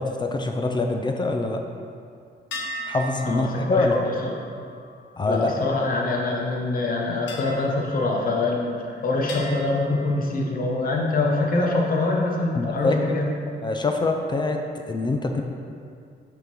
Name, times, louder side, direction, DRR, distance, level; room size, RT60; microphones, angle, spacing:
voice 1, 0.0-1.6 2.9-3.9 5.2-5.5 12.5-13.0 13.5-14.6 14.9-15.4, left 3 dB, 25° left, 4 dB, 0.4 m, -24 dB
sound 1, 2.5-6.2 7.3-8.8 9.3-11.0, equal, 85° left, 1.0 m, -39 dB
voice 2, 3.2-4.4 5.3-13.2, left 2 dB, 50° left, -1 dB, 1.0 m, -24 dB
5.7 x 3.7 x 5.9 m, 2.3 s
cardioid pair, 145°, 18 cm